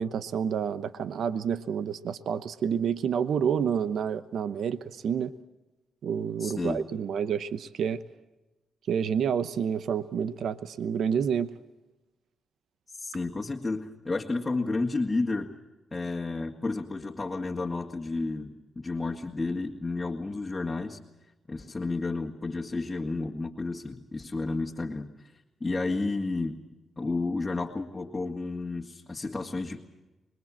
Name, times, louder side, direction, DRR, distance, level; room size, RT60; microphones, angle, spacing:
voice 1, 0.0-5.3 6.0-8.0 8.9-11.5, right 7 dB, 75° right, 14 dB, 0.9 m, -29 dB
voice 2, 6.4-6.8 13.0-15.5 15.9-21.0 21.5-25.1 25.6-26.6 27.0-29.8, left 3 dB, 25° left, 0 dB, 2.1 m, -31 dB
25.5 x 21.5 x 7.5 m, 1.1 s
cardioid pair, 60°, 0 cm